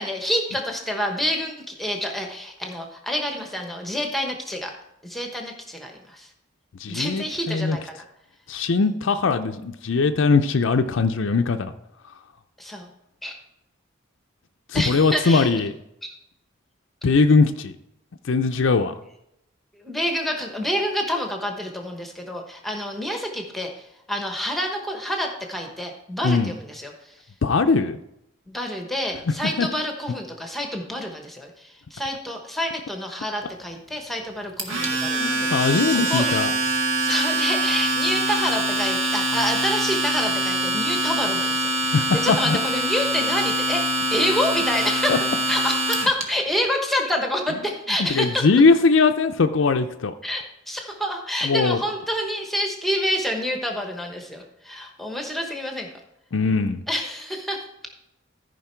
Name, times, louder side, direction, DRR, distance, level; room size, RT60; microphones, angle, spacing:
voice 1, 0.0-4.7 5.0-6.3 6.9-8.0 12.6-12.9 13.2-13.3 14.7-15.5 16.0-16.1 19.7-27.1 28.5-36.3 37.0-45.1 45.5-48.5 50.2-55.9 56.9-57.7, equal, ahead, 2 dB, 1.1 m, -28 dB
voice 2, 6.8-7.8 8.5-11.7 14.7-15.7 17.0-17.8 18.3-18.9 26.2-26.5 27.4-28.0 29.3-29.7 35.1-36.5 41.9-42.6 45.1-45.2 48.1-50.1 51.4-51.8 56.3-56.8, left 4 dB, 65° left, 7 dB, 0.5 m, -20 dB
Domestic sounds home sounds, 34.6-46.2, right 1 dB, 65° right, 1.7 m, -24 dB
14.0 x 5.2 x 4.4 m, 0.83 s
head